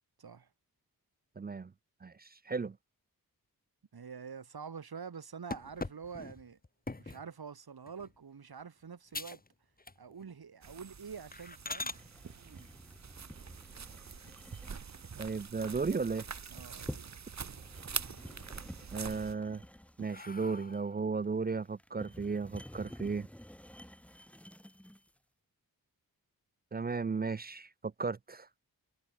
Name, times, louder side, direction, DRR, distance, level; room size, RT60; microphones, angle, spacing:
voice 1, 1.4-1.7 2.0-2.8 15.2-16.3 18.9-19.6 20.0-23.3 26.7-28.5, right 4 dB, 25° right, 0.4 m, -35 dB
voice 2, 3.9-6.6 7.0-9.4 10.0-11.9 16.5-17.1 18.3-18.4, right 6 dB, 75° right, 6.9 m, -46 dB
sound 1, 5.5-7.3 7.9-8.2 8.6-8.7 9.1-9.5 9.8-10.3 10.7-10.8 11.3-12.0 14.0-14.7 15.2-15.3 15.7-15.8 16.1-16.9 17.2-17.8 18.2-18.8 19.4-21.1, left 3 dB, 25° left, 2.6 m, -44 dB
sound 2, 10.6-19.3, right 6 dB, 45° right, 1.2 m, -45 dB
sound 3, 11.8-25.2, equal, 5° left, 3.7 m, -51 dB
wide cardioid pair, 125°, 37 cm